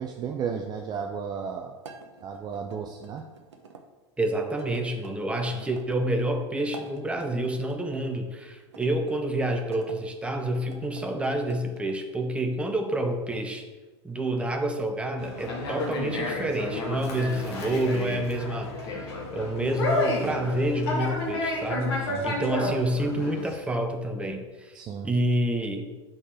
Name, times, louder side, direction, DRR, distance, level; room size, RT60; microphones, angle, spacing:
voice 1, 0.0-1.7 2.2-3.2 5.5-5.6 22.1-22.3 24.7-25.1, right 6 dB, 30° right, 3 dB, 0.5 m, -34 dB
sound 1, 1.8-3.8 4.6-5.9 6.6-7.8 8.7-10.0 10.6-12.0, right 4 dB, 70° right, 0.8 m, -48 dB
voice 2, 4.2-13.6 14.0-19.0 19.3-24.7 25.0-25.9, right 1 dB, 10° right, 5 dB, 0.8 m, -28 dB
Conversation, 15.2-23.6, left 2 dB, 60° left, 1.5 m, -31 dB
5.1 x 4.2 x 5.8 m, 1.2 s
figure-of-eight pair, 80°, 15 cm